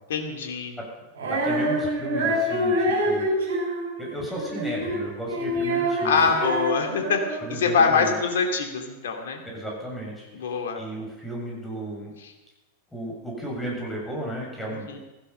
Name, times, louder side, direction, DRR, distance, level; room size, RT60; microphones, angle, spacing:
voice 1, 0.1-0.7 6.0-7.2 7.5-9.4 10.3-10.8 14.7-15.0, left 5 dB, 60° left, 4 dB, 2.7 m, -24 dB
Female singing, 1.2-7.6, equal, 65° right, 5.7 m, -26 dB
voice 2, 1.3-3.5 4.0-6.4 7.4-8.2 9.4-10.3 10.8-12.1 12.9-15.0, right 1 dB, 10° left, -2 dB, 7.1 m, -34 dB
16.0 x 15.5 x 5.6 m, 1.1 s
figure-of-eight pair, 90°, 0 cm